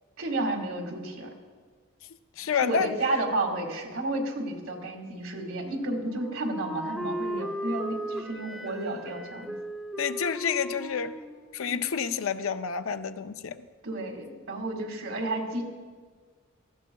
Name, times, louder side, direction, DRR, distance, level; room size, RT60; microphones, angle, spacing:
voice 1, 0.2-1.3 2.6-9.5 13.8-15.6, right 2 dB, 90° right, 2 dB, 2.0 m, -31 dB
voice 2, 2.4-2.9 10.0-11.2 11.5-13.7, left 6 dB, 80° left, 11 dB, 0.5 m, -29 dB
Wind instrument woodwind instrument, 5.6-12.5, equal, ahead, 0.6 m, -37 dB
18.5 x 15.0 x 2.3 m, 1.5 s
head